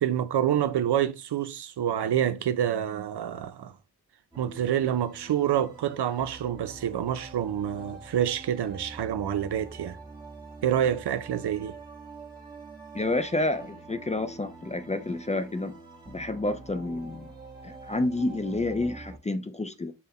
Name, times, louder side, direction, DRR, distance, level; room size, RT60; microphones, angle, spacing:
voice 1, 0.0-3.7 4.4-10.0 10.6-11.8, right 10 dB, 85° right, 0.6 m, -27 dB
sound 1, 4.3-19.2, right 3 dB, 10° right, 1.2 m, -46 dB
voice 2, 12.9-15.7 16.1-17.3 17.6-19.9, left 2 dB, 20° left, 0.3 m, -29 dB
5.6 x 2.2 x 4.1 m
wide cardioid pair, 110°, 39 cm